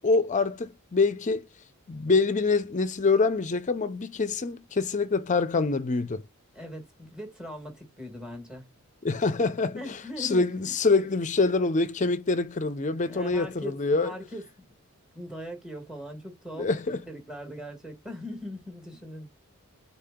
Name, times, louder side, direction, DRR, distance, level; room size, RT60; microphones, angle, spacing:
voice 1, 0.0-1.5 1.9-6.2 9.0-9.8 10.2-14.1 16.6-17.0, left 3 dB, 35° left, 0.5 m, -25 dB
voice 2, 6.5-8.7 9.7-10.7 13.1-14.5 15.1-19.3, equal, 5° right, 1.6 m, -40 dB
4.1 x 2.8 x 3.6 m
head